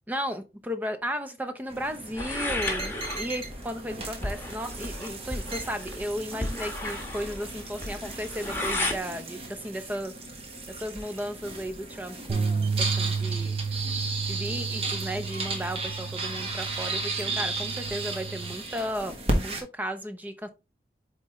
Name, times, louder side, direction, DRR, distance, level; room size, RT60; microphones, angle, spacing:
voice 1, 0.1-10.1 10.7-13.6 14.3-20.5, equal, 10° right, 0.6 m, -35 dB
sound 1, 1.7-19.6, right 2 dB, 35° right, 1.3 m, -35 dB
sound 2, 2.2-9.0, left 1 dB, 15° left, 1.3 m, -34 dB
sound 3, 12.3-18.5, right 5 dB, 70° right, 0.8 m, -32 dB
8.2 x 3.7 x 3.1 m
head